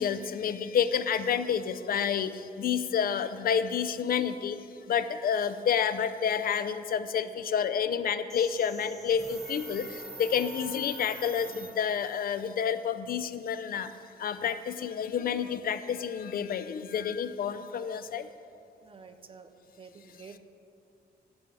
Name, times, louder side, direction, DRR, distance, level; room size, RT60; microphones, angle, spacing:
voice 1, 0.0-4.6 4.9-13.9 14.2-18.3, left 7 dB, 60° left, 12 dB, 0.4 m, -29 dB
sound 1, 8.3-12.2, right 2 dB, 5° left, 1.6 m, -45 dB
voice 2, 18.8-19.5 19.8-20.4, right 5 dB, 35° right, 8 dB, 0.4 m, -49 dB
10.5 x 7.6 x 4.6 m, 2.7 s
wide cardioid pair, 170°, 17 cm